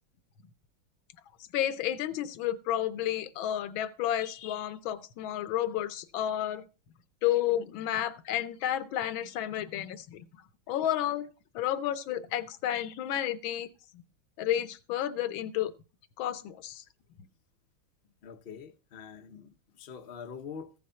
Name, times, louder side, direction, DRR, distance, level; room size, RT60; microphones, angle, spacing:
voice 1, 1.5-6.6 7.2-10.2 10.7-11.3 11.5-13.7 14.4-15.7 16.2-16.8, left 11 dB, 85° left, 1.6 m, -31 dB
voice 2, 18.2-20.7, left 6 dB, 40° left, 0.9 m, -44 dB
15.0 x 6.3 x 5.6 m
omnidirectional pair, 2.1 m